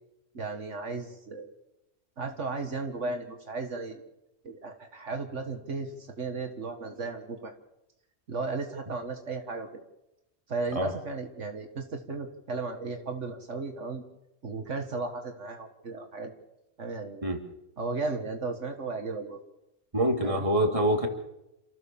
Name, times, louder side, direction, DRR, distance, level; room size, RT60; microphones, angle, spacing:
voice 1, 0.3-1.5 2.2-4.0 4.4-7.5 8.3-9.8 10.5-14.0 14.4-16.3 16.8-17.2 17.8-19.4 20.2-20.5, right 3 dB, 75° right, 5 dB, 2.1 m, -35 dB
voice 2, 19.9-21.1, right 1 dB, 25° right, 3 dB, 3.1 m, -25 dB
28.0 x 15.0 x 7.1 m, 0.90 s
omnidirectional pair, 1.3 m